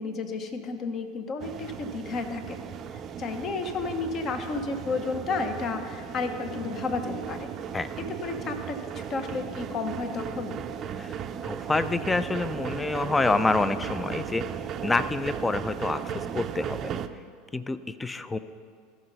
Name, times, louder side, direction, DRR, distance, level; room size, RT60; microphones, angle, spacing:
voice 1, 0.0-2.6 2.9-7.5 8.1-10.6, left 3 dB, 40° left, 7 dB, 1.0 m, -32 dB
sound 1, 1.4-17.1, right 8 dB, 40° right, 0.5 m, -36 dB
voice 2, 11.0-14.5 14.8-16.9 17.5-18.4, left 3 dB, 15° left, 13 dB, 0.5 m, -27 dB
14.5 x 6.2 x 5.4 m, 2.3 s
figure-of-eight pair, 75°, 0 cm